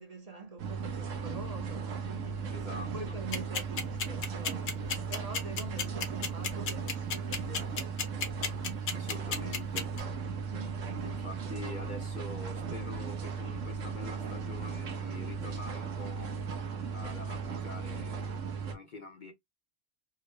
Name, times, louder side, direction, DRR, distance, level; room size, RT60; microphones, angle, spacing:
voice 1, 0.0-7.8 10.5-11.5, right 3 dB, 35° right, 0.7 m, -45 dB
sound 1, 0.6-18.7, right 5 dB, 65° right, 1.0 m, -37 dB
voice 2, 2.5-3.2 8.9-10.0 11.0-16.4 16.9-19.3, left 2 dB, 55° left, 0.5 m, -45 dB
sound 2, 3.3-10.0, left 5 dB, 75° left, 1.3 m, -32 dB
3.6 x 2.1 x 3.1 m
omnidirectional pair, 1.5 m